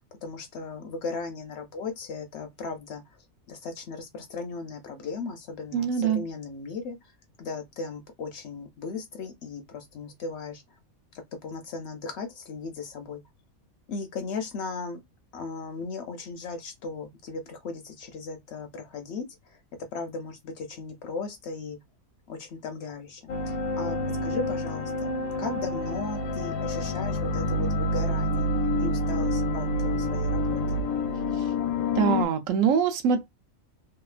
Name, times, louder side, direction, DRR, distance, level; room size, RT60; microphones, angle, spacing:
voice 1, 0.2-3.0 3.5-7.0 7.4-10.6 11.4-13.2 13.9-15.0 15.3-19.6 19.9-21.8 22.3-24.0 24.2-25.1 25.4-30.8, left 4 dB, 65° left, 0.7 m, -37 dB
voice 2, 5.7-6.2 32.0-33.3, right 7 dB, 75° right, 0.9 m, -23 dB
sound 1, 23.3-32.2, left 2 dB, 90° left, 1.0 m, -27 dB
2.8 x 2.3 x 2.4 m
omnidirectional pair, 1.4 m